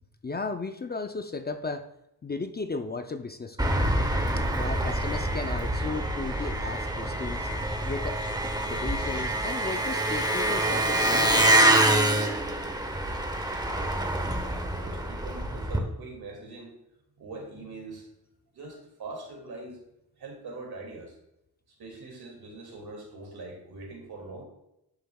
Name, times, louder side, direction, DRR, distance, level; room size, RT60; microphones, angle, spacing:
voice 1, 0.2-1.9 2.2-3.9 4.4-7.5 7.8-8.2 8.7-11.5, left 3 dB, 25° left, 7 dB, 0.4 m, -35 dB
Engine, 3.6-15.8, right 1 dB, 10° right, 0.8 m, -26 dB
voice 2, 14.3-16.7 17.2-18.1 18.5-19.8 20.2-21.1 21.8-24.4, right 2 dB, 70° right, 1 dB, 2.4 m, -42 dB
11.5 x 6.5 x 2.3 m, 0.83 s
wide cardioid pair, 115°, 39 cm